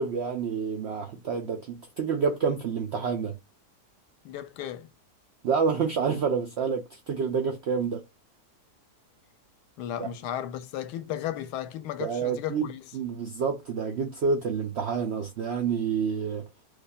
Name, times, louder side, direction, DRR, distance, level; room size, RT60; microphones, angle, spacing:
voice 1, 0.0-3.4 5.4-8.0 10.0-10.1 12.0-16.5, right 5 dB, 75° right, 0.6 m, -28 dB
voice 2, 4.2-4.9 9.8-12.8, left 11 dB, 85° left, 1.2 m, -35 dB
4.9 x 2.4 x 2.3 m
omnidirectional pair, 1.7 m